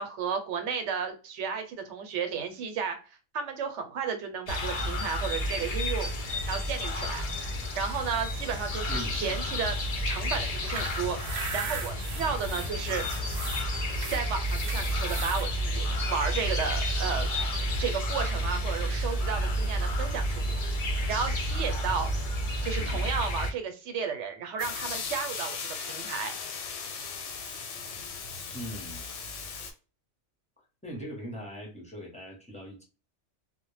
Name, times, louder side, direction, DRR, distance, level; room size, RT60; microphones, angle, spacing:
voice 1, 0.0-3.0 3.3-6.1 6.5-7.2 7.8-9.8 10.0-13.1 14.1-17.4 17.8-22.1 22.6-26.4, right 6 dB, 80° right, 7 dB, 0.9 m, -33 dB
sound 1, 4.5-23.5, equal, 45° left, 0.5 m, -30 dB
voice 2, 8.9-9.6 22.8-23.2 28.5-29.0 30.8-32.8, equal, 5° left, -4 dB, 0.6 m, -41 dB
sound 2, 10.4-15.5, right 5 dB, 55° right, 0.5 m, -39 dB
sound 3, 24.6-29.7, left 5 dB, 90° left, 1.0 m, -37 dB
2.1 x 2.1 x 3.1 m, 0.34 s
omnidirectional pair, 1.2 m